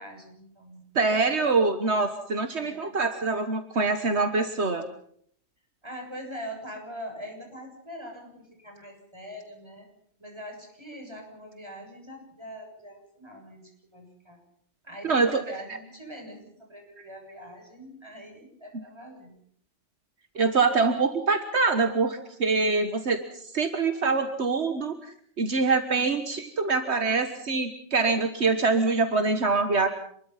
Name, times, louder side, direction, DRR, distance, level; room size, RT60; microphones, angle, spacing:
voice 1, 0.0-0.8 2.6-3.0 5.8-9.9 10.2-14.4 14.8-19.3, equal, 25° right, 1 dB, 7.4 m, -43 dB
voice 2, 1.0-4.8 15.0-15.4 20.4-29.9, right 4 dB, 70° right, 7 dB, 1.8 m, -25 dB
27.0 x 22.0 x 5.8 m, 0.66 s
omnidirectional pair, 1.2 m